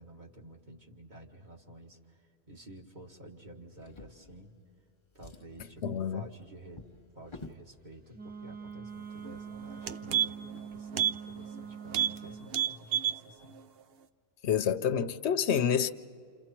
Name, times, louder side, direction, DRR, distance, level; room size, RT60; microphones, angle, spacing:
voice 1, 0.0-4.5 5.1-6.9 7.1-13.6, right 1 dB, 45° right, 2.1 m, -51 dB
Drawer open or close, 3.8-4.8 5.1-7.7 8.6-8.7 9.1-9.2, left 3 dB, 30° left, 0.7 m, -51 dB
voice 2, 5.8-6.2 14.4-15.9, left 8 dB, 85° left, 1.0 m, -28 dB
Wind instrument woodwind instrument, 8.1-12.5, right 6 dB, 10° right, 0.8 m, -44 dB
sound 1, 9.3-9.4 9.7-10.6 10.9-11.2 11.5-11.6 11.9-12.2 12.5-13.2 13.6-13.7, right 9 dB, 65° right, 0.9 m, -29 dB
29.5 x 28.0 x 4.5 m
omnidirectional pair, 1.1 m